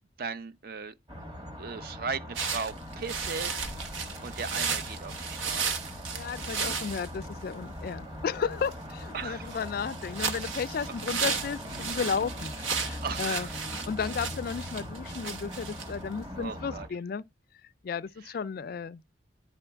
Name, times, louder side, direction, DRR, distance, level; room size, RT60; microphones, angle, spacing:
voice 1, 0.2-0.9 1.6-3.5 4.2-5.8 9.1-9.6 10.4-10.6 11.9-12.0 13.0-13.7 16.3-16.9 18.2-18.3, right 5 dB, 50° right, 0.5 m, -37 dB
sound 1, 1.1-16.9, left 1 dB, 20° right, 1.4 m, -41 dB
sound 2, 2.4-16.6, right 5 dB, 85° right, 1.0 m, -35 dB
voice 2, 6.1-13.5 13.9-17.2 17.8-19.0, left 6 dB, 50° left, 0.3 m, -33 dB
9.9 x 3.8 x 3.4 m
head